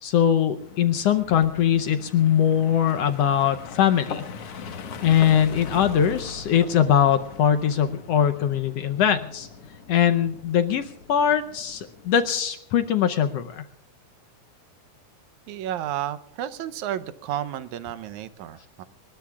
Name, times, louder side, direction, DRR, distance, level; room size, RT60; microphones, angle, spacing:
voice 1, 0.0-4.2 4.5-4.7 5.0-9.5 9.9-13.6, left 9 dB, 75° left, 8 dB, 1.6 m, -21 dB
sound 1, 0.6-12.4, left 5 dB, 55° left, 2.2 m, -41 dB
voice 2, 15.5-18.8, right 11 dB, 80° right, 13 dB, 2.1 m, -32 dB
27.0 x 20.0 x 2.4 m, 0.77 s
omnidirectional pair, 3.4 m